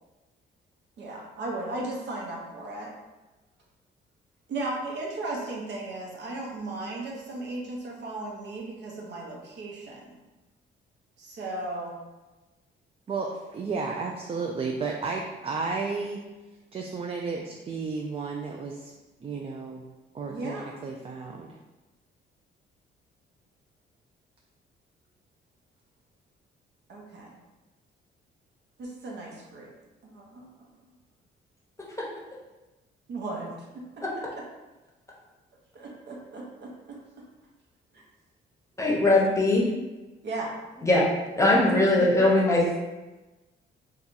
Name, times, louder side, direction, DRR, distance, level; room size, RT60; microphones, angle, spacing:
voice 1, 1.0-2.9 4.5-10.2 11.2-12.0 20.3-20.7 26.9-27.4 28.8-29.7 30.0-30.5 33.1-34.0 34.4-34.5 35.7-37.2 40.2-40.5 42.0-42.3, right 2 dB, 60° right, -2 dB, 0.8 m, -36 dB
voice 2, 13.1-16.2 16.7-18.9 19.2-19.8 20.1-21.6, right 4 dB, 30° right, 1 dB, 0.3 m, -33 dB
voice 3, 38.8-39.7 40.8-41.1 41.4-42.8, left 2 dB, 15° left, -4 dB, 0.8 m, -21 dB
2.7 x 2.4 x 3.8 m, 1.1 s
cardioid pair, 90°, 20 cm